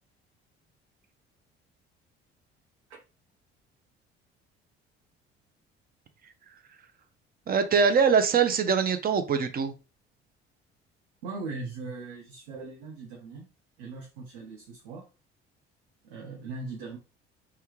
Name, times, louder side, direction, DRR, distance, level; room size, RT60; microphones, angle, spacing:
voice 1, 7.5-9.7, right 6 dB, 30° right, 9 dB, 0.5 m, -23 dB
voice 2, 11.2-13.4 13.8-15.0 16.0-17.0, right 3 dB, 70° right, -1 dB, 0.7 m, -39 dB
3.3 x 2.3 x 3.0 m, 0.32 s
figure-of-eight pair, 50°, 32 cm